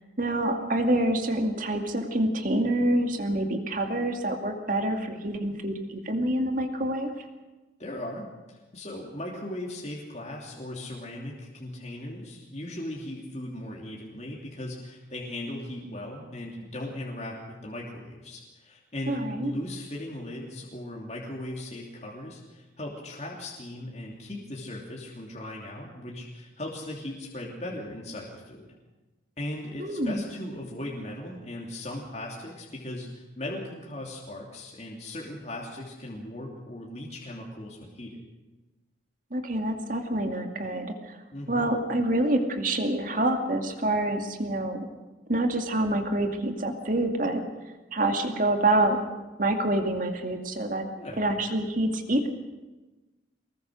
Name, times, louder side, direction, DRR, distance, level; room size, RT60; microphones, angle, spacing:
voice 1, 0.2-7.1 19.1-19.5 29.8-30.2 39.3-41.2 41.5-44.9 45.3-47.4 47.9-49.0 49.4-50.9 51.2-52.3, right 1 dB, 45° right, 5 dB, 2.4 m, -26 dB
voice 2, 7.8-28.7 29.4-38.2 41.3-41.7 51.0-51.2, left 1 dB, 35° left, -2 dB, 3.0 m, -38 dB
24.0 x 20.0 x 6.5 m, 1.1 s
head